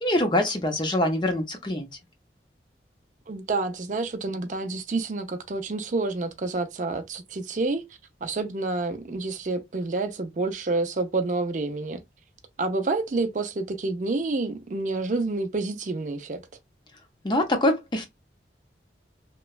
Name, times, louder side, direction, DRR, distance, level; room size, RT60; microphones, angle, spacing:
voice 1, 0.0-1.9 17.2-18.1, left 1 dB, 25° left, 0.5 m, -24 dB
voice 2, 3.3-7.8 8.2-12.0 12.6-16.4, right 3 dB, 45° right, 0.4 m, -28 dB
2.9 x 2.2 x 2.3 m
head